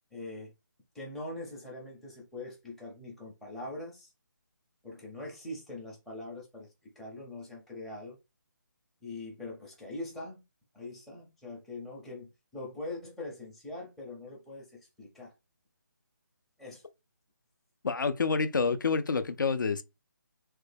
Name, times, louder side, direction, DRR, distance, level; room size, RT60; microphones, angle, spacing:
voice 1, 0.1-0.5 0.9-4.1 4.8-8.2 9.0-10.4 10.7-15.3 16.6-16.8, left 2 dB, ahead, 0.5 m, -42 dB
voice 2, 17.8-19.8, left 4 dB, 75° left, 0.5 m, -28 dB
3.2 x 2.2 x 3.3 m
hypercardioid pair, 160°, 11 cm